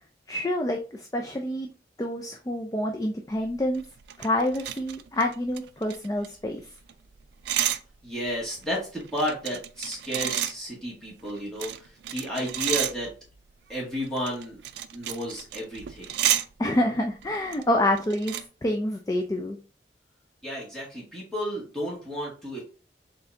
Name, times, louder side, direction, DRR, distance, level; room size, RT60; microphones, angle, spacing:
voice 1, 0.3-1.7 2.0-3.8 4.2-6.6 16.6-19.6, left 1 dB, 20° left, 3 dB, 0.4 m, -27 dB
sound 1, 3.4-6.6 6.9-7.0 7.2-7.8 8.3-10.5 11.2-13.3 14.0-16.4 17.2-17.7 18.0-18.4, right 11 dB, 80° right, 0.4 m, -31 dB
voice 2, 8.0-13.1 13.7-14.6 14.9-16.1 20.4-22.6, equal, 5° left, -6 dB, 1.9 m, -32 dB
4.1 x 3.8 x 2.7 m, 0.35 s
head